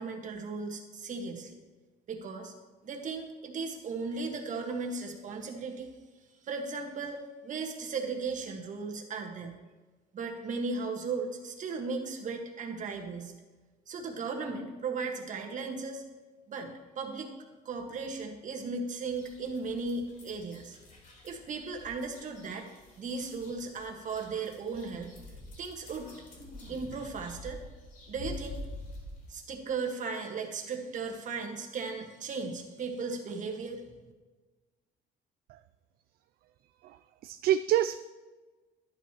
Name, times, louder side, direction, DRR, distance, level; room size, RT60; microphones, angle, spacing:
voice 1, 0.0-1.6 2.1-2.5 2.8-5.9 6.4-9.5 10.1-13.3 13.9-16.0 16.5-16.7 16.9-17.3 17.6-20.8 21.2-22.7 23.0-25.1 25.6-26.1 26.7-27.6 28.1-28.6 29.3-33.8, right 4 dB, 50° right, 3 dB, 1.7 m, -36 dB
sound 1, 19.1-29.3, left 2 dB, 55° left, 3.8 m, -47 dB
voice 2, 36.8-38.0, right 11 dB, 65° right, 11 dB, 0.4 m, -27 dB
11.5 x 10.5 x 3.0 m, 1.3 s
cardioid pair, 110°, 17 cm